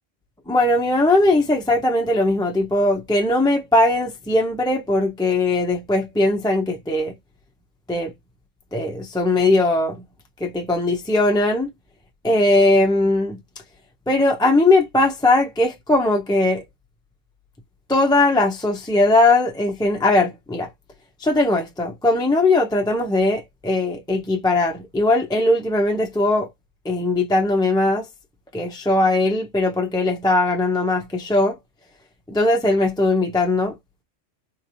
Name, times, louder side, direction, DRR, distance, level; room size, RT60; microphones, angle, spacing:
voice 1, 0.5-7.1 7.9-8.1 8.7-10.0 10.4-11.7 12.2-13.4 14.1-16.6 17.9-20.7 21.2-26.5 26.8-28.1 28.5-31.6 32.3-33.7, left 2 dB, 5° left, 0.4 m, -19 dB
4.5 x 2.8 x 2.6 m
omnidirectional pair, 1.3 m